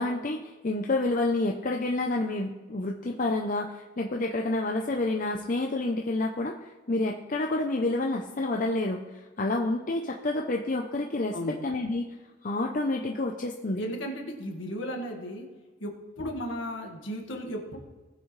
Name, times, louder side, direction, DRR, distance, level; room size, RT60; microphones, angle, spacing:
voice 1, 0.0-11.4 11.6-12.1 12.4-13.8, left 2 dB, 40° left, 1 dB, 0.6 m, -29 dB
voice 2, 13.8-15.5 15.8-17.8, equal, 65° left, 1 dB, 1.8 m, -35 dB
18.5 x 6.3 x 3.2 m, 1.3 s
head